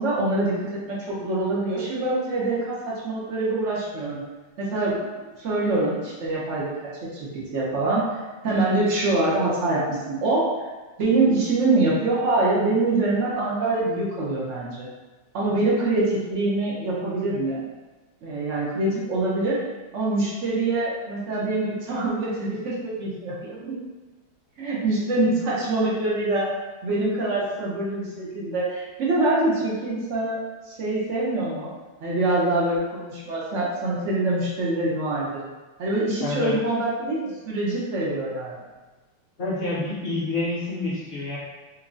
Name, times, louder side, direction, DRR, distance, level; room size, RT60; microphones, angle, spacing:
voice 1, 0.0-4.2 4.6-8.1 8.4-10.5 11.0-14.9 15.3-17.6 18.2-19.6 19.9-23.7 24.6-26.5 26.8-30.4 30.7-31.7 32.0-35.4 35.8-38.5, right 2 dB, 75° right, -6 dB, 0.6 m, -25 dB
voice 2, 36.2-36.6 39.4-41.4, left 2 dB, 40° left, -9 dB, 1.0 m, -28 dB
5.6 x 2.0 x 2.6 m, 1.2 s
omnidirectional pair, 2.3 m